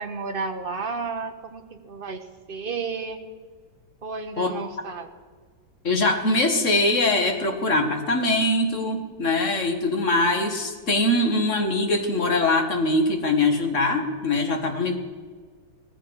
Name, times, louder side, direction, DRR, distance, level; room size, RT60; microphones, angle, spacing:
voice 1, 0.0-3.2 4.0-5.1, right 4 dB, 35° right, 6 dB, 1.1 m, -32 dB
voice 2, 5.8-15.0, left 2 dB, 40° left, 4 dB, 1.8 m, -22 dB
18.0 x 15.0 x 4.8 m, 1.5 s
omnidirectional pair, 2.1 m